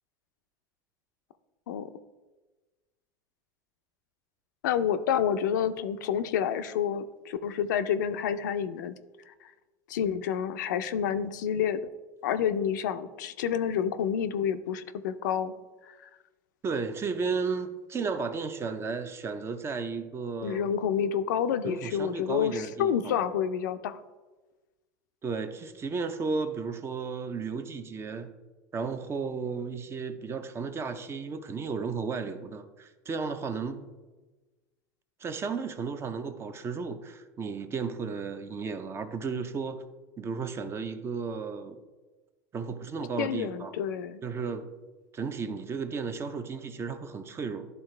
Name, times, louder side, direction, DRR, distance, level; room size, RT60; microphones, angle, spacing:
voice 1, 4.6-9.0 9.9-11.8 12.2-15.5 16.0-16.1 20.4-24.0 43.2-44.2, left 8 dB, 85° left, 0.5 m, -29 dB
voice 2, 16.6-20.7 21.6-23.2 25.2-28.3 28.7-33.9 35.2-39.8 40.2-41.8 42.5-43.7 44.2-44.7 45.1-47.7, right 5 dB, 25° right, 0.6 m, -34 dB
11.0 x 4.0 x 3.2 m
supercardioid pair, 115°, 10 cm